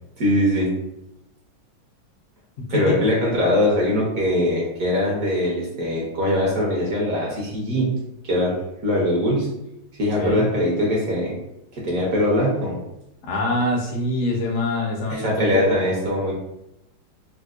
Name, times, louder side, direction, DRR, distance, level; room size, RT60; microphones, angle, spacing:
voice 1, 0.2-0.7 2.7-7.9 8.3-8.5 8.8-9.5 10.0-11.4 11.7-12.8 15.1-16.3, left 1 dB, 60° right, -4 dB, 0.9 m, -21 dB
voice 2, 2.6-3.0 10.2-10.5 13.2-15.8, left 2 dB, 70° left, -1 dB, 0.6 m, -25 dB
4.3 x 2.1 x 2.4 m, 0.86 s
omnidirectional pair, 2.2 m